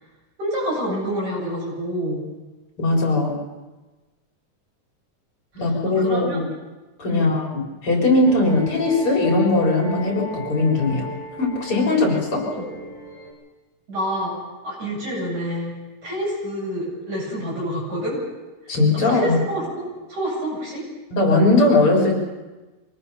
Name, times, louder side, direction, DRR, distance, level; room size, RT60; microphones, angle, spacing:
voice 1, 0.4-2.2 5.5-5.6 6.0-6.4 7.1-7.3 12.4-12.7 13.9-14.3 14.6-15.7 16.0-18.2 18.6-20.9, equal, 75° right, -4 dB, 9.5 m, -28 dB
voice 2, 2.8-3.4 5.5-6.5 7.0-11.1 11.4-12.5 18.7-19.4 21.1-22.3, left 2 dB, 45° left, -1 dB, 4.8 m, -19 dB
sound 1, 8.2-13.3, equal, 10° right, 6.8 m, -36 dB
25.0 x 18.5 x 5.6 m, 1.2 s
omnidirectional pair, 3.3 m